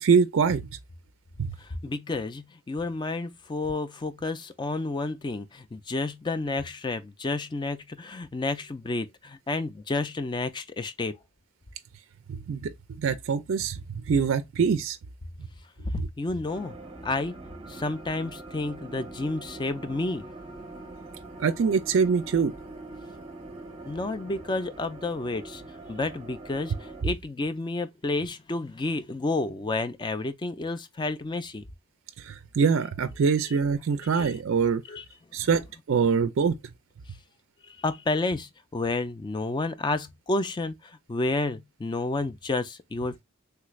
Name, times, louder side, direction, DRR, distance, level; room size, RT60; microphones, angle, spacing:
voice 1, 0.0-0.7 1.4-1.5 12.3-15.0 16.0-16.1 21.4-22.5 32.2-34.8 35.3-36.5, right 6 dB, 60° right, 0.4 m, -24 dB
voice 2, 1.6-11.2 16.2-16.8 17.0-17.4 17.7-20.2 23.9-25.6 25.9-31.6 33.4-33.6 34.0-34.3 34.9-35.0 37.6-43.2, left 2 dB, 20° left, 0.3 m, -30 dB
sound 1, 16.5-27.0, right 2 dB, 25° right, 0.7 m, -43 dB
3.3 x 3.1 x 2.2 m
head